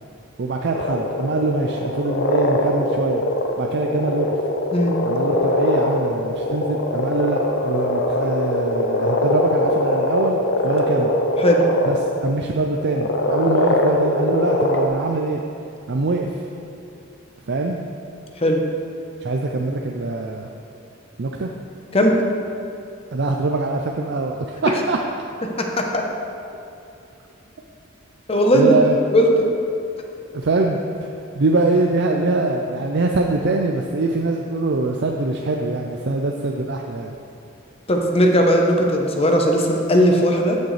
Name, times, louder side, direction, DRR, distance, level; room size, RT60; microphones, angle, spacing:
voice 1, 0.4-3.2 3.6-4.4 5.0-11.1 11.9-15.4 15.9-16.3 17.5-17.8 19.2-20.5 21.2-21.5 23.1-25.0 28.5-29.0 30.3-30.8 31.4-37.1, right 2 dB, 55° right, 1 dB, 0.5 m, -23 dB
sound 1, 0.7-12.2 12.8-14.9, left 1 dB, 55° left, 0.7 m, -22 dB
voice 2, 25.4-26.0 28.3-28.7 29.1-29.5 37.9-40.6, equal, 30° left, 1 dB, 0.9 m, -17 dB
14.0 x 6.5 x 3.3 m, 2.6 s
head